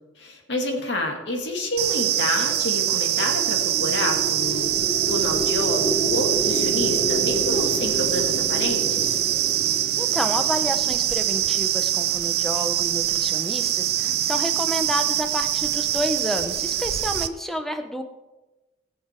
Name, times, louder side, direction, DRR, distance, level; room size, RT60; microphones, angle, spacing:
voice 1, 0.2-9.2, left 1 dB, 60° left, 1 dB, 2.2 m, -29 dB
sound 1, 1.8-17.3, right 12 dB, 55° right, 0.6 m, -24 dB
sound 2, 3.1-11.6, equal, 15° left, 1.2 m, -30 dB
voice 2, 10.0-18.0, equal, ahead, 6 dB, 0.9 m, -29 dB
20.0 x 6.9 x 4.5 m, 1.1 s
head